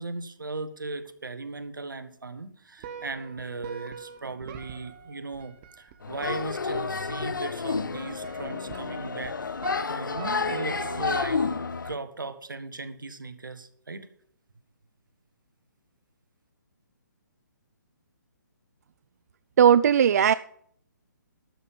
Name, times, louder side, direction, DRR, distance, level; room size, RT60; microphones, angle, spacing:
voice 1, 0.0-9.3 9.9-11.4 11.8-14.1, right 3 dB, 80° right, 10 dB, 1.6 m, -37 dB
sound 1, 2.8-11.8, right 8 dB, 30° right, 1.3 m, -44 dB
sound 2, 6.0-11.9, left 5 dB, 75° left, 0.8 m, -30 dB
voice 2, 19.6-20.3, right 8 dB, 55° right, 15 dB, 0.4 m, -17 dB
12.0 x 5.5 x 8.4 m, 0.63 s
figure-of-eight pair, 140°, 11 cm